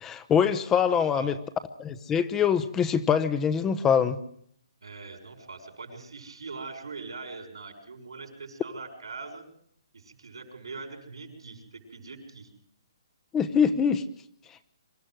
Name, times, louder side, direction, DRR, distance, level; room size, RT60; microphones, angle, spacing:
voice 1, 0.0-1.3 1.8-4.2 13.3-14.0, left 7 dB, 15° left, 12 dB, 1.0 m, -24 dB
voice 2, 0.7-1.3 4.8-9.5 9.9-12.5, right 4 dB, 85° right, 4 dB, 6.2 m, -42 dB
25.0 x 13.5 x 7.8 m, 0.64 s
hypercardioid pair, 150°, 3 cm